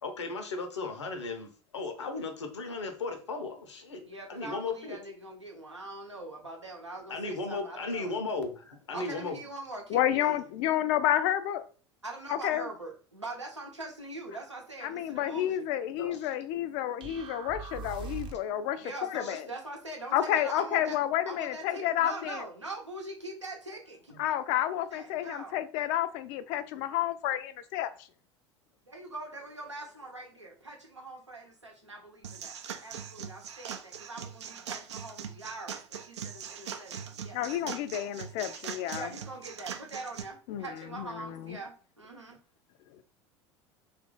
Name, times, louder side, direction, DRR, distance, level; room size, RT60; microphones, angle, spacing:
voice 1, 0.0-4.0 4.3-5.0 7.1-9.4 16.0-16.3 19.2-19.4, left 3 dB, 75° left, 6 dB, 0.8 m, -36 dB
voice 2, 4.1-8.1 8.9-10.4 12.0-15.7 18.8-21.0 21.3-25.6 26.7-26.8 28.9-32.5 32.8-37.4 38.9-42.4, right 2 dB, 90° right, 0 dB, 0.8 m, -43 dB
voice 3, 9.9-11.6 12.3-12.7 14.8-19.5 20.1-22.4 24.2-27.9 37.3-39.1 40.5-40.7 40.9-41.6, left 12 dB, 50° left, 12 dB, 0.4 m, -30 dB
sound 1, 17.0-18.6, right 4 dB, 35° right, 0.6 m, -41 dB
sound 2, 32.2-40.2, right 7 dB, 75° right, 0.4 m, -41 dB
3.0 x 2.5 x 3.7 m, 0.39 s
figure-of-eight pair, 75°, 15 cm